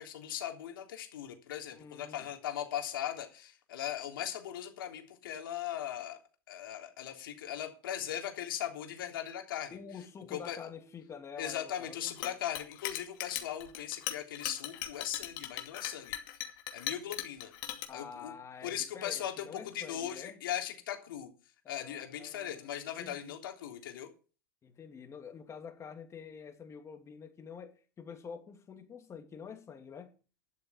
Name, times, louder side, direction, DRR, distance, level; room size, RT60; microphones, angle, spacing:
voice 1, 0.0-6.2 6.5-9.8 10.3-10.7 11.4-16.2 16.7-17.5 17.9-18.3 18.6-21.3 21.7-24.1, left 10 dB, 85° left, 3.4 m, -39 dB
voice 2, 1.7-2.3 9.7-12.1 17.9-20.4 21.6-23.3 24.6-30.1, left 6 dB, 25° left, 2.7 m, -47 dB
Chink clink, 12.1-17.8, left 12 dB, 65° left, 2.7 m, -39 dB
11.5 x 7.8 x 7.2 m
supercardioid pair, 120°, 11 cm